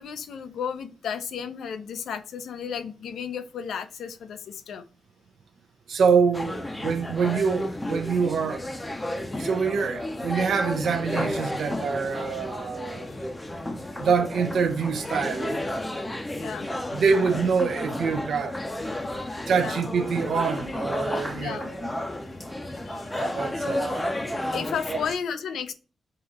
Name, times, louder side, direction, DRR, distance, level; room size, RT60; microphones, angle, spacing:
voice 1, 0.0-4.8 16.3-16.7 18.9-19.8 21.3-21.7 22.7-23.1 24.5-25.7, left 7 dB, 85° left, 0.5 m, -34 dB
voice 2, 5.9-8.6 9.4-13.1 14.0-15.6 16.9-18.5 19.5-21.9 23.1-24.1 24.9-25.0, right 5 dB, 65° right, 0.6 m, -25 dB
sound 1, 6.3-25.1, left 1 dB, 10° left, 0.6 m, -32 dB
3.8 x 2.9 x 4.1 m
wide cardioid pair, 160°, 0 cm